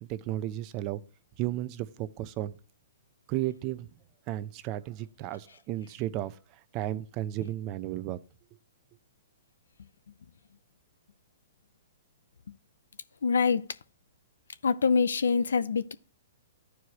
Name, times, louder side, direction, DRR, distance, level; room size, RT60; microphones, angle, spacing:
voice 1, 0.1-1.0 1.4-2.5 3.3-3.9 4.3-6.4 6.7-8.2, right 14 dB, 35° right, 0.6 m, -33 dB
voice 2, 13.2-13.6 14.6-15.9, left 5 dB, 85° left, 0.6 m, -25 dB
14.0 x 4.8 x 2.9 m
hypercardioid pair, 135°, 0 cm